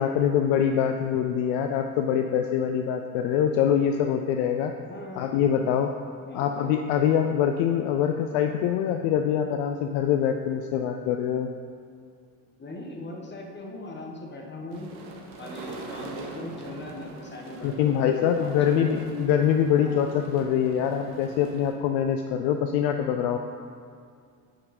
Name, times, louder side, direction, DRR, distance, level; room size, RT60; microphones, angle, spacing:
voice 1, 0.0-4.7 5.2-5.9 6.3-11.5 17.6-23.4, left 8 dB, 55° left, 5 dB, 0.6 m, -24 dB
voice 2, 4.9-5.3 6.2-6.5 12.6-14.9 15.4-19.0 19.8-20.0, left 1 dB, 20° left, 0 dB, 1.6 m, -39 dB
sound 1, 14.7-21.7, right 3 dB, 70° right, 1.3 m, -43 dB
8.8 x 5.4 x 5.1 m, 2.3 s
hypercardioid pair, 65°, 49 cm